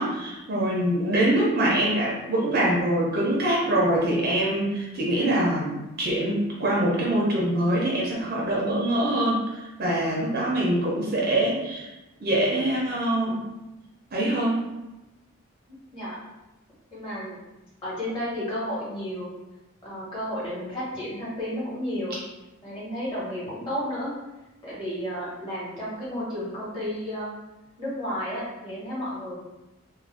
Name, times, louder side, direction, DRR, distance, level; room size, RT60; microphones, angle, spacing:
voice 1, 0.0-11.9 12.2-13.4 14.1-14.6, right 1 dB, 45° right, -4 dB, 0.6 m, -24 dB
voice 2, 16.9-17.4 17.8-19.3 19.8-22.2 22.6-24.1 24.6-27.3 27.8-29.3, equal, 25° left, -9 dB, 1.2 m, -32 dB
2.5 x 2.1 x 3.3 m, 1.0 s
head